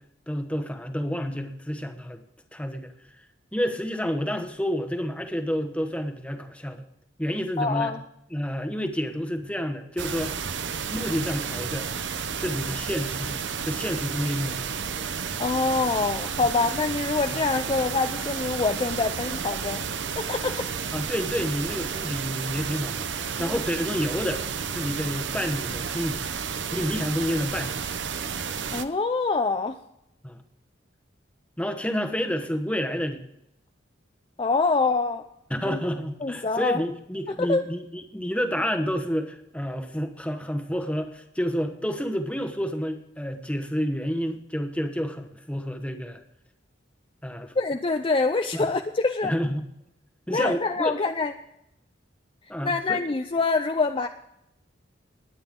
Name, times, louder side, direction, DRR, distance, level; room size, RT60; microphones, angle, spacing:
voice 1, 0.3-2.2 2.5-2.9 3.5-6.9 7.2-7.9 8.3-10.3 10.9-11.9 12.3-14.7 17.3-17.4 20.9-26.2 26.7-27.8 30.2-30.4 31.6-33.2 35.5-46.2 47.2-47.5 48.5-48.7 49.2-49.6 50.3-51.0 52.5-53.0, equal, 5° left, 6 dB, 1.1 m, -29 dB
voice 2, 7.6-8.0 15.4-19.8 20.2-20.7 23.4-23.6 28.7-29.8 34.4-35.2 35.6-35.8 36.2-36.8 37.3-37.6 47.6-49.3 50.3-51.3 52.6-54.1, left 3 dB, 30° left, 7 dB, 0.5 m, -25 dB
sound 1, 10.0-28.8, right 6 dB, 70° right, 0.8 m, -32 dB
20.0 x 8.9 x 3.7 m, 0.81 s
head